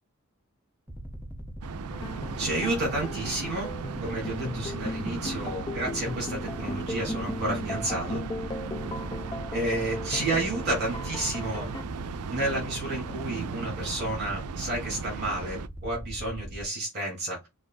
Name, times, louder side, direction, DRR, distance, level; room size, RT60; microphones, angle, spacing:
sound 1, 0.9-16.7, right 1 dB, 10° right, 0.8 m, -40 dB
sound 2, 1.6-15.7, right 6 dB, 85° right, 0.4 m, -38 dB
sound 3, 1.9-11.8, left 2 dB, 20° left, 0.3 m, -37 dB
voice 1, 2.4-3.7 4.0-8.2 9.5-11.7 12.3-17.4, right 1 dB, 50° right, 3.3 m, -31 dB
6.3 x 2.8 x 2.5 m
head